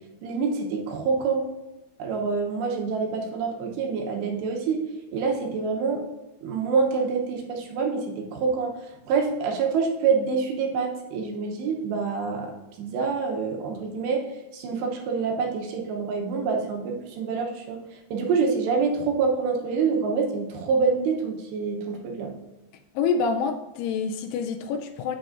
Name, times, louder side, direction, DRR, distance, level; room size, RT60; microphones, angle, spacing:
voice 1, 0.2-1.5 2.0-4.9 5.1-6.0 6.4-8.7 9.1-12.5 12.8-14.2 14.5-17.8 18.1-22.3, right 5 dB, 75° right, 1 dB, 2.9 m, -26 dB
voice 2, 23.0-25.2, left 5 dB, 85° left, 5 dB, 2.3 m, -27 dB
9.1 x 7.6 x 2.5 m, 1.0 s
omnidirectional pair, 5.2 m